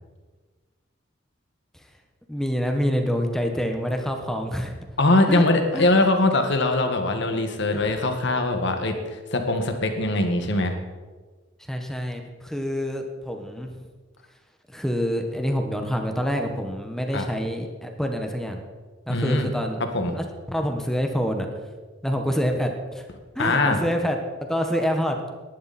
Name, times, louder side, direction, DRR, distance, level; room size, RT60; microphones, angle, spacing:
voice 1, 2.3-4.7 5.3-5.4 5.7-5.9 7.7-7.9 11.6-13.8 14.7-18.6 19.1-19.9 20.1-21.5 22.0-23.0 23.3-24.2 24.5-25.2, equal, ahead, 4 dB, 1.3 m, -27 dB
voice 2, 5.0-10.8 17.1-17.3 19.1-19.5 19.9-20.1 23.4-23.8, left 2 dB, 65° left, 5 dB, 1.9 m, -22 dB
19.0 x 11.5 x 4.4 m, 1.4 s
head